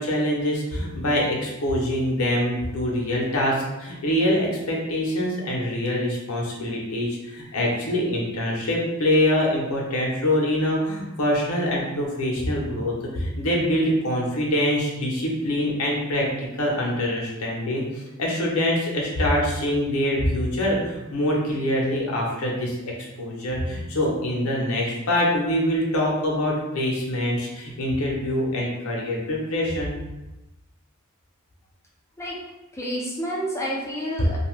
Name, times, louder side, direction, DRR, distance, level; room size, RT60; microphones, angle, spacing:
voice 1, 0.0-22.8 23.2-30.0, left 1 dB, 75° left, -2 dB, 0.8 m, -24 dB
voice 2, 32.7-34.4, equal, 15° left, -4 dB, 0.4 m, -29 dB
2.7 x 2.3 x 3.1 m, 1.0 s
head